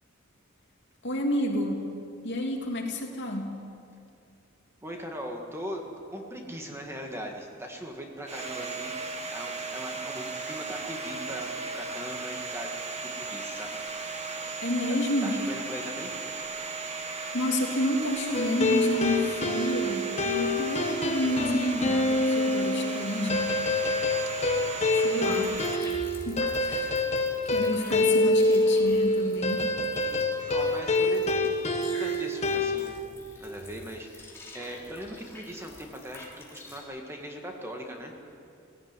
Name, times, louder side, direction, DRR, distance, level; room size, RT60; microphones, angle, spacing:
voice 1, 1.0-1.8 2.2-3.5 14.6-15.4 17.3-23.5 24.9-25.6 26.2-27.1 27.4-29.7, left 1 dB, 60° left, 0 dB, 2.9 m, -29 dB
voice 2, 4.8-5.8 6.1-8.9 9.3-12.7 13.0-13.8 15.2-16.1 30.5-31.6 31.9-33.0 33.4-38.1, equal, 15° right, 1 dB, 1.9 m, -40 dB
Domestic sounds home sounds, 8.3-25.8, right 3 dB, 35° right, 1.6 m, -36 dB
sound 1, 18.3-32.8, left 2 dB, 35° left, 1.6 m, -26 dB
sound 2, 25.2-36.8, left 2 dB, 10° left, 4.1 m, -47 dB
17.0 x 17.0 x 9.1 m, 2.4 s
head